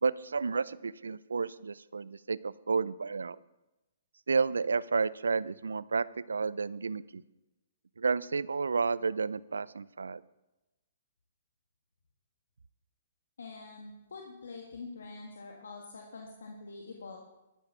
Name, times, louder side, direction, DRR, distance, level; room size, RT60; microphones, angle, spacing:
voice 1, 0.0-3.4 4.3-7.2 8.0-10.2, right 5 dB, 85° right, 20 dB, 0.4 m, -31 dB
voice 2, 13.4-17.2, left 3 dB, 75° left, 1 dB, 1.7 m, -45 dB
13.0 x 9.2 x 5.6 m, 1.0 s
hypercardioid pair, 130°, 0 cm